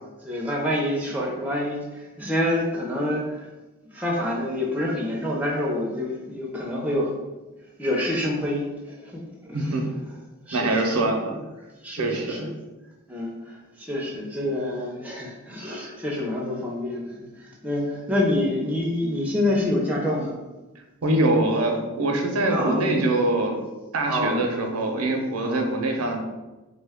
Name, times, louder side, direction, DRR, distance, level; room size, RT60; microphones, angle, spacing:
voice 1, 0.2-3.5 3.9-7.1 7.8-9.1 9.5-9.7 10.5-11.0 11.8-12.5 13.1-20.3 22.5-22.8 24.1-24.4 25.4-25.7, left 1 dB, 5° right, -2 dB, 0.4 m, -27 dB
voice 2, 9.5-9.8 10.5-11.4 11.9-12.5 21.0-23.7 23.9-26.2, right 2 dB, 80° right, 2 dB, 0.6 m, -24 dB
3.1 x 2.2 x 3.4 m, 1.1 s
head